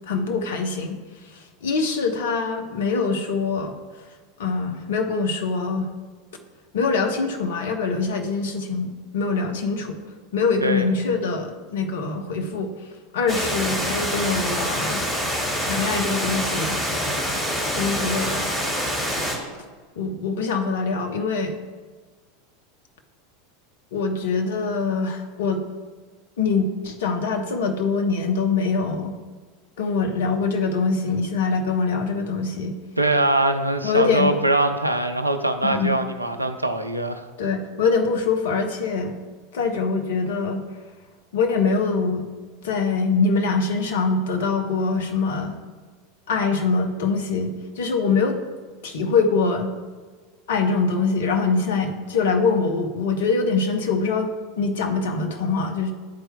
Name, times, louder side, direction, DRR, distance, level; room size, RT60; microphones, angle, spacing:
voice 1, 0.1-1.0 1.6-3.7 4.4-5.9 6.7-10.0 10.3-12.7 13.1-15.0 15.6-16.8 17.7-18.5 20.0-21.6 23.9-25.6 26.4-29.1 29.8-32.8 33.8-34.3 35.6-35.9 37.4-39.1 39.5-40.6 41.3-42.2 42.6-45.5 46.3-48.4 48.8-49.7 50.5-54.3 54.6-55.9, left 4 dB, 60° left, 4 dB, 0.8 m, -23 dB
Water, 13.3-19.3, equal, 20° left, 1.8 m, -26 dB
voice 2, 33.0-37.2, right 1 dB, 85° right, 7 dB, 0.4 m, -22 dB
11.0 x 4.4 x 2.2 m, 1.4 s
figure-of-eight pair, 80°, 0 cm